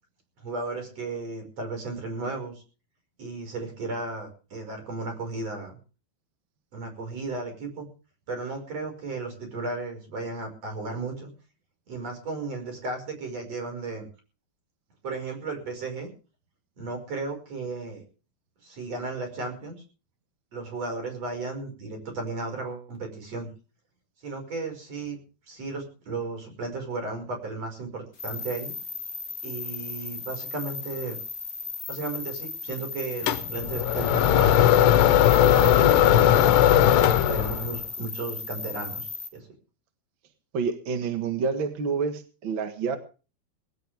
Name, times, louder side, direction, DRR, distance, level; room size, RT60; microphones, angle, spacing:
voice 1, 0.4-2.6 3.2-5.8 6.7-7.9 8.3-11.3 11.9-14.1 15.0-16.1 16.8-18.0 18.6-19.8 20.5-23.5 24.2-25.2 25.5-28.7 29.4-31.2 31.9-34.7 35.2-39.5, right 3 dB, 40° right, 5 dB, 6.5 m, -34 dB
sound 1, 28.2-39.3, left 4 dB, 25° left, 1.6 m, -36 dB
sound 2, 33.3-37.8, left 11 dB, 80° left, 3.0 m, -19 dB
voice 2, 40.5-43.0, right 5 dB, 60° right, 7 dB, 1.2 m, -28 dB
19.5 x 16.5 x 3.5 m, 0.36 s
omnidirectional pair, 4.7 m